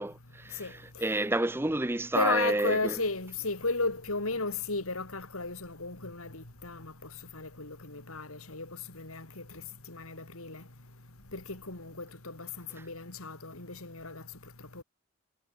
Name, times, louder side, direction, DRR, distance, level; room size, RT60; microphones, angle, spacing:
voice 1, 0.0-3.0, right 2 dB, 10° right, 0.6 m, -30 dB
voice 2, 2.1-6.9 7.3-8.7 8.9-9.4 9.9-10.6 11.3-14.2 14.7-14.8, left 3 dB, 70° left, 3.6 m, -34 dB
head